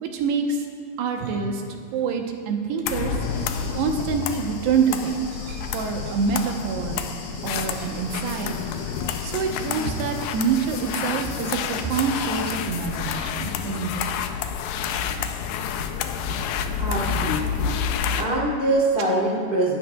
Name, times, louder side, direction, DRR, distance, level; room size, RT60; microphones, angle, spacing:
voice 1, 0.0-0.6 1.0-1.6 1.9-3.2 3.7-5.3 5.7-7.0 7.4-8.6 9.2-13.9, right 5 dB, 85° right, 3 dB, 3.1 m, -26 dB
sound 1, 0.9-2.4 2.6-8.2, right 3 dB, 65° right, 2.6 m, -45 dB
sound 2, 2.9-18.3, left 7 dB, 85° left, 2.0 m, -29 dB
sound 3, 3.2-12.5, left 1 dB, 30° left, 2.1 m, -43 dB
voice 2, 16.8-17.7 18.2-19.8, right 1 dB, 50° left, -6 dB, 0.6 m, -24 dB
24.0 x 11.5 x 2.4 m, 2.3 s
omnidirectional pair, 4.6 m